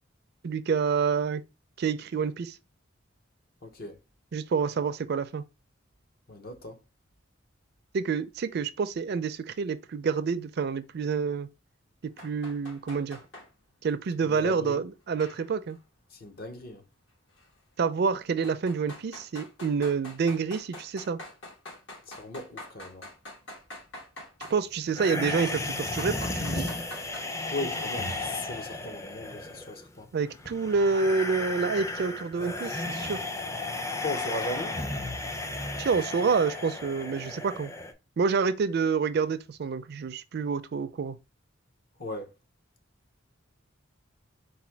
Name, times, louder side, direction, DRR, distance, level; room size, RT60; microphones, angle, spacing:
voice 1, 0.4-1.4 1.8-2.6 4.3-5.4 7.9-11.5 12.0-13.2 13.8-15.8 17.8-21.2 24.5-26.7 30.1-33.2 35.8-37.7 38.2-41.2, right 5 dB, 55° right, 0.4 m, -28 dB
voice 2, 3.6-4.0 6.3-6.8 14.2-14.8 16.1-16.8 22.1-23.1 27.5-30.1 34.0-34.8 42.0-42.3, left 1 dB, 50° left, 0.8 m, -37 dB
sound 1, 12.2-13.5 15.2-15.8 17.4-17.5 18.4-24.6 25.2-25.6 26.0-27.2, left 1 dB, 65° left, 1.6 m, -45 dB
sound 2, 24.9-37.9, left 2 dB, 15° left, 0.4 m, -34 dB
4.1 x 2.2 x 4.4 m
head